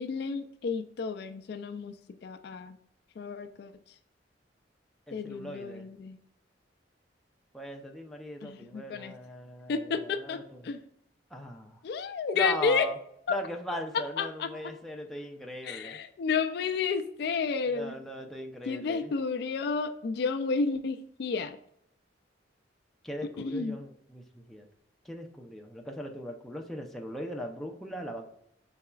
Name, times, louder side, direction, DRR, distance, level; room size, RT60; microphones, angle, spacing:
voice 1, 0.0-1.9 2.2-2.8 3.2-3.7 5.1-6.2 8.4-9.1 9.7-10.8 11.8-12.9 13.3-13.4 14.2-14.5 15.6-18.0 18.7-21.6 23.4-23.8, left 5 dB, 60° left, 9 dB, 0.3 m, -31 dB
voice 2, 5.1-5.9 7.5-10.6 11.3-11.8 12.3-13.0 13.3-16.0 17.7-19.1 23.0-24.7 25.0-28.3, equal, ahead, 1 dB, 0.5 m, -39 dB
5.6 x 4.0 x 2.3 m, 0.73 s
head